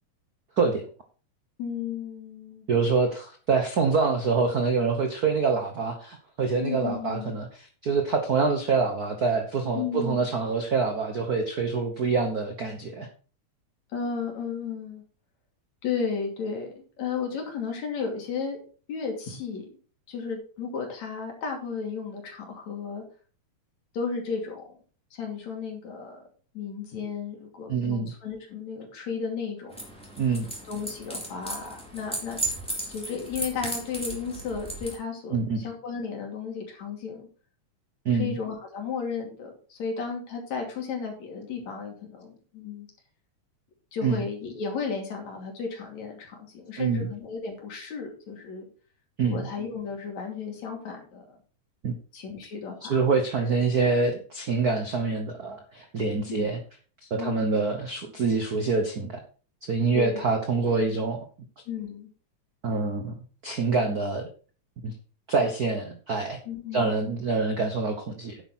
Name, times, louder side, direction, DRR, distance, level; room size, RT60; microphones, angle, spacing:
voice 1, 1.6-2.7 6.6-7.3 9.7-10.2 13.9-15.0 15.8-18.6 18.9-19.7 20.1-23.0 23.9-24.7 25.1-26.2 26.5-29.7 30.7-32.4 32.9-37.3 38.1-42.9 43.9-48.7 49.2-51.4 52.1-53.0 56.3-56.5 57.2-57.7 59.9-60.2 61.7-62.1 66.5-67.0, left 5 dB, 70° left, 2 dB, 4.0 m, -34 dB
voice 2, 2.7-7.5 7.8-13.1 27.7-28.1 30.2-30.5 35.3-35.6 38.0-38.3 44.0-44.2 46.8-47.1 49.2-49.4 51.8-51.9 52.9-56.6 57.1-59.2 59.6-61.2 62.6-63.1 63.4-64.3 64.8-64.9 65.3-66.4 66.7-68.4, right 4 dB, 60° right, 5 dB, 1.0 m, -26 dB
sound 1, 29.7-34.9, right 2 dB, ahead, 2.9 m, -35 dB
10.0 x 8.3 x 4.4 m, 0.38 s
omnidirectional pair, 3.3 m